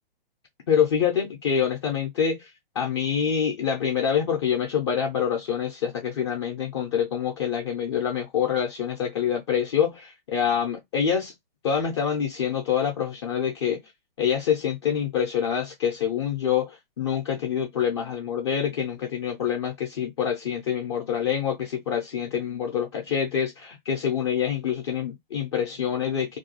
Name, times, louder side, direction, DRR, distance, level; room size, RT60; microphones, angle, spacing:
voice 1, 0.7-2.5 2.8-11.3 11.6-13.8 14.2-26.4, left 8 dB, 30° left, 0.4 m, -26 dB
2.3 x 2.1 x 2.8 m
figure-of-eight pair, 125°, 29 cm